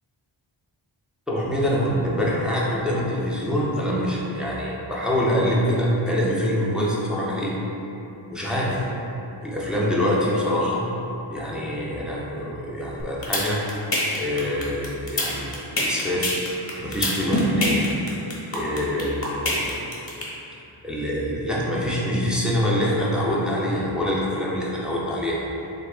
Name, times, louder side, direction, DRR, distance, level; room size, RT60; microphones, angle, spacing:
voice 1, 1.3-7.5 8.3-8.8 9.4-10.9 11.3-13.6 14.2-15.5 15.8-16.4 16.8-17.9 18.5-19.6 20.8-25.5, equal, ahead, -6 dB, 0.5 m, -25 dB
sound 1, 13.0-20.2, left 1 dB, 30° left, 0.8 m, -23 dB
3.4 x 2.5 x 3.4 m, 2.9 s
wide cardioid pair, 110°, 48 cm